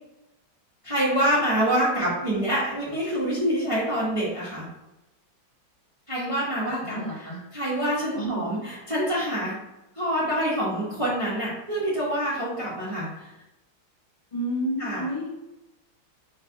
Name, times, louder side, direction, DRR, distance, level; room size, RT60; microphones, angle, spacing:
voice 1, 0.8-4.7 6.1-7.3 7.5-9.6 9.9-13.3 14.8-15.0, equal, 20° right, -9 dB, 0.9 m, -26 dB
voice 2, 6.6-7.4 8.1-8.4 14.3-15.3, right 1 dB, 30° left, -7 dB, 1.6 m, -30 dB
3.3 x 3.2 x 4.6 m, 0.95 s
omnidirectional pair, 2.2 m